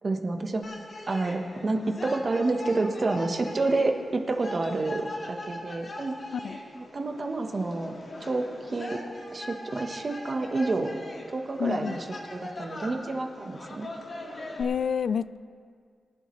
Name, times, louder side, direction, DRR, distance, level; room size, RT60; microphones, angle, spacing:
voice 1, 0.0-0.6 1.1-6.2 6.7-7.9 8.2-9.0 9.3-10.9 11.3-12.0 12.3-13.9, right 3 dB, 40° right, 5 dB, 1.2 m, -29 dB
sound 1, 0.6-14.6, left 1 dB, 45° left, 2.1 m, -41 dB
voice 2, 11.6-12.0 14.6-15.4, left 7 dB, 70° left, 17 dB, 0.3 m, -29 dB
23.0 x 11.5 x 3.2 m, 2.1 s
wide cardioid pair, 105°, 0 cm